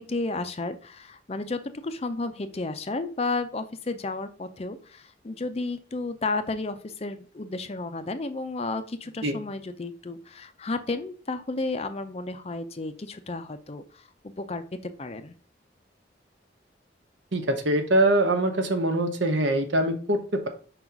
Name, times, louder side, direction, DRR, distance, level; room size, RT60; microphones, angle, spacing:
voice 1, 0.0-15.3, left 3 dB, 30° left, 10 dB, 0.5 m, -32 dB
voice 2, 17.3-20.5, right 1 dB, 70° right, 6 dB, 1.1 m, -23 dB
5.4 x 3.9 x 5.9 m, 0.41 s
head